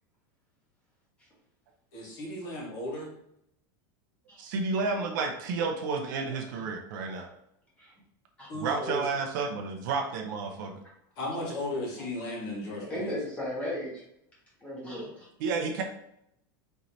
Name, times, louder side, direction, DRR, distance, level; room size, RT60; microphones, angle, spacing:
voice 1, 1.9-3.2 8.5-9.0 11.2-13.1, left 1 dB, 35° left, -3 dB, 1.3 m, -35 dB
voice 2, 4.4-7.3 8.5-10.8 15.4-15.8, right 4 dB, 55° right, 3 dB, 0.6 m, -31 dB
voice 3, 12.9-14.0 14.6-15.2, left 1 dB, 10° left, -6 dB, 1.3 m, -35 dB
4.6 x 3.0 x 2.7 m, 0.76 s
supercardioid pair, 170°, 12 cm